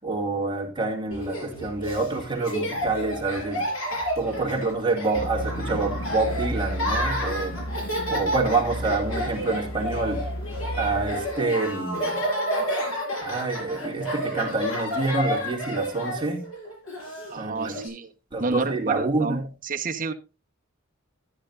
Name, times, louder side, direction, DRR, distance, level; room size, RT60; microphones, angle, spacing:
voice 1, 0.0-3.7 4.2-7.6 8.1-10.3 10.7-12.3 13.2-16.5 17.4-17.8 18.3-19.4, right 3 dB, 25° right, 2.4 m, -27 dB
Laughter, 1.1-17.9, equal, 90° left, 6.6 m, -31 dB
sound 1, 5.1-11.2, equal, 70° left, 1.8 m, -33 dB
voice 2, 17.3-18.1 18.4-20.1, right 3 dB, 40° right, 1.1 m, -29 dB
13.5 x 10.0 x 2.6 m
head